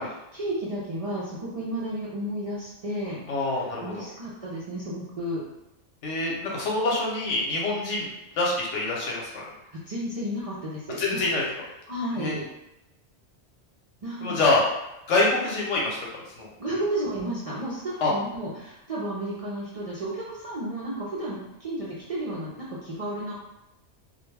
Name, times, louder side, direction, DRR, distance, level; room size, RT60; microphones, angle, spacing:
voice 1, 0.0-5.4 9.7-11.4 11.9-12.4 14.0-14.5 16.6-23.3, right 1 dB, 55° right, -8 dB, 0.4 m, -33 dB
voice 2, 3.3-4.0 6.0-8.1 8.4-9.4 11.0-11.4 12.2-12.4 14.2-14.6 15.1-16.0 16.4-16.5 18.0-18.1, left 2 dB, 80° left, -3 dB, 1.0 m, -25 dB
2.3 x 2.2 x 3.1 m, 0.89 s
omnidirectional pair, 1.2 m